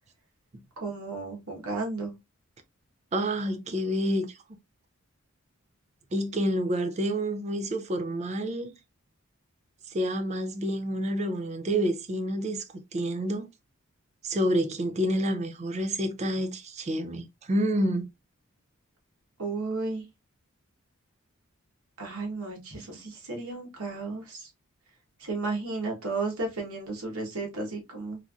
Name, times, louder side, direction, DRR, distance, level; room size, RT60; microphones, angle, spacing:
voice 1, 0.8-2.1 19.4-20.0 22.0-24.5 25.2-28.2, right 3 dB, 80° right, 1.1 m, -33 dB
voice 2, 3.1-4.4 6.1-8.7 9.9-12.6 12.9-13.5 14.2-18.1, equal, 30° right, 0.3 m, -28 dB
3.1 x 2.5 x 2.3 m
head